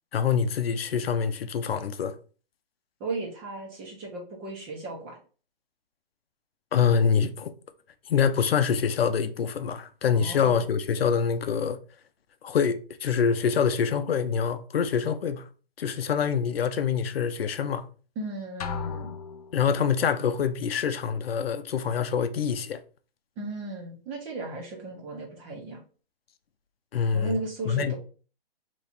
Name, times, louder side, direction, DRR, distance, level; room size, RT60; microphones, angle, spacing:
voice 1, 0.1-2.2 6.7-7.5 8.1-11.8 12.4-15.4 15.8-17.9 19.5-22.8 26.9-27.4 27.7-27.9, left 7 dB, 80° left, 0.6 m, -25 dB
voice 2, 3.0-5.2 10.1-10.7 18.1-19.1 19.8-19.9 23.4-25.8 27.1-27.9, right 2 dB, 15° right, 0.9 m, -36 dB
sound 1, 18.6-20.1, left 6 dB, 40° left, 0.4 m, -36 dB
3.4 x 3.0 x 4.1 m
hypercardioid pair, 160°, 29 cm